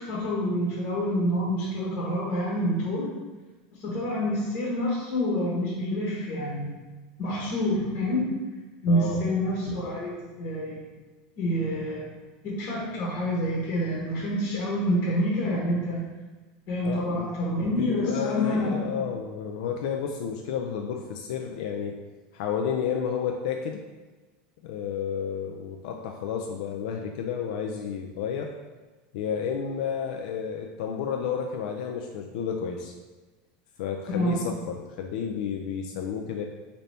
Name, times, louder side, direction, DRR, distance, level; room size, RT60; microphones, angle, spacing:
voice 1, 0.1-3.1 3.8-6.7 7.2-8.3 8.8-10.8 11.4-12.0 12.4-16.1 16.7-18.9 34.1-34.4, equal, 50° left, -5 dB, 0.9 m, -27 dB
voice 2, 8.9-9.2 16.8-22.0 22.3-23.8 24.6-28.5 29.1-32.9 33.8-36.4, left 7 dB, 75° left, 3 dB, 0.3 m, -31 dB
4.0 x 2.7 x 3.3 m, 1.2 s
supercardioid pair, 155°, 4 cm